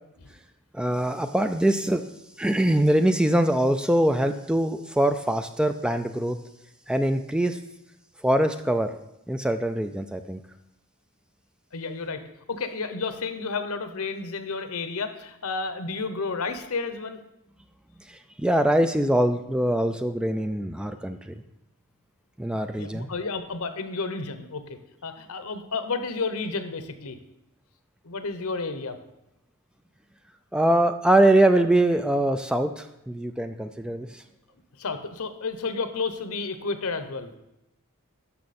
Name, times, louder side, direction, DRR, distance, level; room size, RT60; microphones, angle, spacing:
voice 1, 0.7-2.0 2.4-6.4 6.9-7.6 8.2-8.9 9.3-10.4 18.4-21.2 22.4-23.1 30.5-34.2, right 1 dB, 5° right, 8 dB, 0.3 m, -23 dB
voice 2, 11.7-12.2 12.5-17.2 22.8-27.2 28.0-29.0 34.8-37.3, left 4 dB, 70° left, 9 dB, 0.9 m, -31 dB
13.0 x 5.7 x 4.2 m, 0.87 s
head